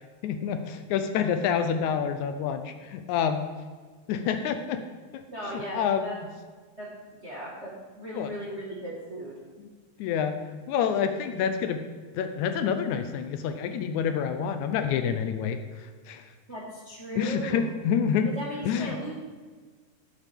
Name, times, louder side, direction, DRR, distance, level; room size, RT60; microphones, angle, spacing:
voice 1, 0.2-3.5 4.1-4.8 5.1-5.2 5.5-6.1 8.2-8.3 10.0-10.3 10.7-11.8 12.2-16.2 17.2-18.3 18.6-19.0, left 7 dB, 80° left, 8 dB, 1.9 m, -28 dB
voice 2, 5.3-6.2 6.8-6.9 7.2-9.3 16.5-17.7 18.3-19.2, right 1 dB, 35° right, -5 dB, 1.2 m, -37 dB
12.5 x 7.4 x 3.5 m, 1.5 s
omnidirectional pair, 3.5 m